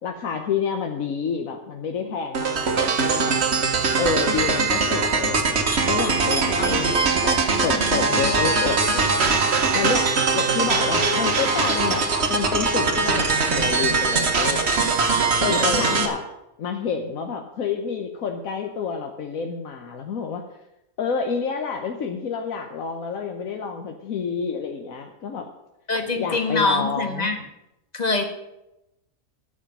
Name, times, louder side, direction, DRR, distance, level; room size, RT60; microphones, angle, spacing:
voice 1, 0.0-3.4 4.0-14.6 15.4-16.2 16.6-20.6 21.0-25.5 26.2-27.3, left 6 dB, 85° left, 4 dB, 1.4 m, -29 dB
sound 1, 2.3-16.1, right 4 dB, 55° right, 1.6 m, -21 dB
voice 2, 6.6-7.1 8.0-8.2 15.6-16.0 25.9-27.4 27.9-28.2, left 3 dB, 30° left, 5 dB, 1.5 m, -25 dB
13.5 x 5.1 x 9.1 m, 0.90 s
omnidirectional pair, 1.4 m